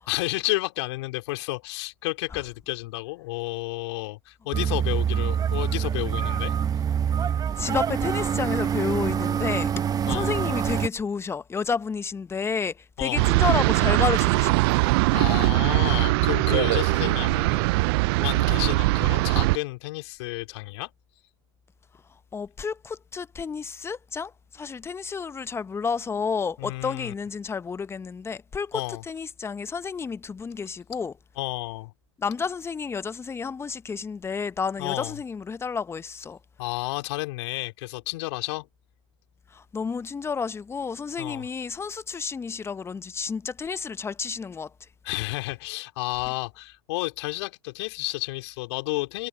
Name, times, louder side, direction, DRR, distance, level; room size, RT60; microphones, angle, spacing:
voice 1, 0.1-6.6 10.0-10.4 13.0-13.3 15.1-17.8 18.2-20.9 26.6-27.1 28.7-29.0 31.4-31.9 34.8-35.2 36.6-38.7 41.2-41.5 45.0-49.3, left 22 dB, 60° left, 4.0 m, -31 dB
sound 1, 4.5-10.9, right 8 dB, 25° right, 0.9 m, -25 dB
voice 2, 7.5-9.7 10.1-14.6 22.3-28.8 29.1-31.1 32.2-36.4 39.5-44.7, left 5 dB, 15° left, 1.0 m, -30 dB
sound 2, 13.2-19.6, right 24 dB, 55° right, 0.4 m, -21 dB
hypercardioid pair, 100°, 16 cm